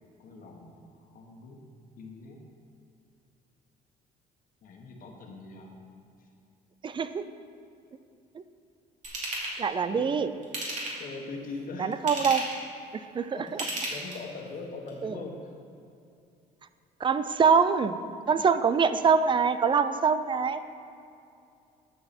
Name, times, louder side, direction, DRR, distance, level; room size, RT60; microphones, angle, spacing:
voice 1, 0.2-1.6 1.9-2.4 4.6-5.7 6.2-6.3 9.9-10.2 11.0-12.1 13.3-15.5, left 3 dB, 55° left, 1 dB, 1.5 m, -42 dB
voice 2, 6.8-7.2 9.6-10.3 11.8-12.4 13.1-13.3 15.0-15.1 17.0-18.0 18.3-20.6, right 6 dB, 30° right, 12 dB, 0.4 m, -24 dB
Ratchet pawl / Tools, 9.0-9.6 10.4-11.1 11.9-12.6 13.5-14.4 14.9-15.0, right 1 dB, 45° right, 2.6 m, -33 dB
12.0 x 6.9 x 4.3 m, 2.6 s
cardioid pair, 110°, 17 cm